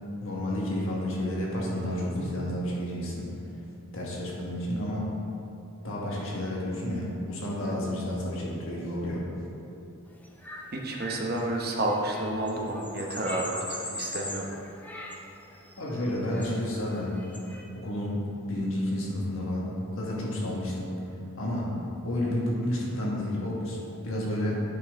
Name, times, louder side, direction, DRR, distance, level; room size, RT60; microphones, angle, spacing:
voice 1, 0.2-3.3 3.9-5.1 5.8-9.2 15.8-17.1 17.7-18.2 18.5-20.9 21.4-23.8 24.0-24.6, left 1 dB, 60° left, -4 dB, 1.5 m, -31 dB
sound 1, 10.2-17.6, left 1 dB, 10° left, 0.5 m, -41 dB
voice 2, 10.7-14.5, right 1 dB, 45° right, 0 dB, 0.8 m, -30 dB
8.5 x 5.6 x 3.6 m, 2.9 s
head